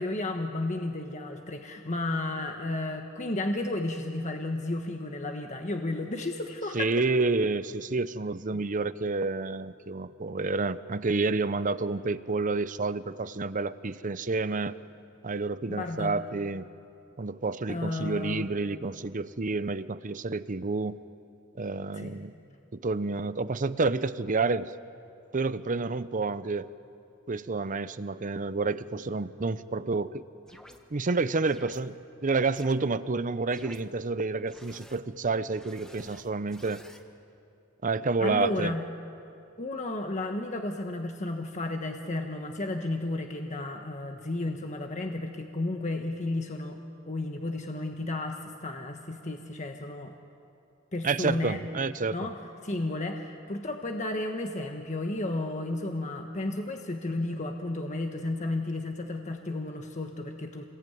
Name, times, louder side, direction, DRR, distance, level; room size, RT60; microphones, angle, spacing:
voice 1, 0.0-6.9 8.5-8.6 15.7-16.2 17.7-18.5 22.0-22.3 38.2-38.8 39.6-46.8 47.0-50.1 50.9-51.6 52.1-52.4 52.6-60.6, left 2 dB, 35° left, 4 dB, 1.3 m, -33 dB
voice 2, 6.7-14.8 15.2-16.7 17.2-21.0 21.6-22.3 22.7-24.7 25.3-26.7 27.3-30.2 30.9-32.0 32.2-36.8 37.8-38.7 51.0-52.3, right 3 dB, 40° right, 14 dB, 0.7 m, -29 dB
sound 1, 30.5-30.8 31.5-31.8 32.5-32.7 33.5-33.8 34.5-35.0 35.5-37.0, equal, 5° left, 1.5 m, -51 dB
27.0 x 20.5 x 9.4 m, 2.6 s
head